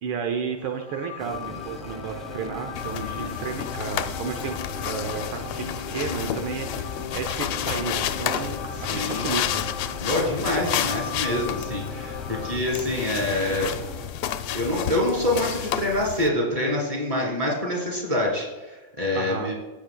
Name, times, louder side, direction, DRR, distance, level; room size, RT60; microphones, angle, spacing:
voice 1, 0.0-9.7 19.1-19.5, right 6 dB, 75° right, 3 dB, 1.6 m, -32 dB
sound 1, 0.6-12.6, left 7 dB, 65° left, 1.2 m, -37 dB
sound 2, 1.2-14.1, equal, ahead, 0.6 m, -41 dB
sound 3, 2.8-16.3, left 10 dB, 85° left, 1.5 m, -31 dB
voice 2, 3.0-3.4 8.9-9.3 10.0-13.7 14.5-19.5, left 1 dB, 15° right, -3 dB, 2.8 m, -26 dB
15.0 x 7.7 x 2.2 m, 1.2 s
omnidirectional pair, 2.4 m